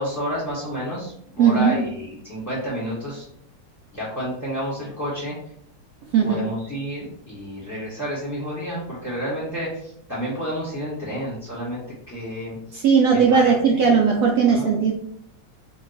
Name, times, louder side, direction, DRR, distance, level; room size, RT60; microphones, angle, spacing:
voice 1, 0.0-3.3 3.9-5.4 6.2-11.8 12.1-12.8 13.1-13.9 14.5-14.7, equal, 10° left, -8 dB, 0.9 m, -30 dB
voice 2, 1.4-1.8 6.1-6.4 12.7-14.9, right 6 dB, 75° right, 0 dB, 0.8 m, -17 dB
2.9 x 2.3 x 4.0 m, 0.68 s
omnidirectional pair, 2.0 m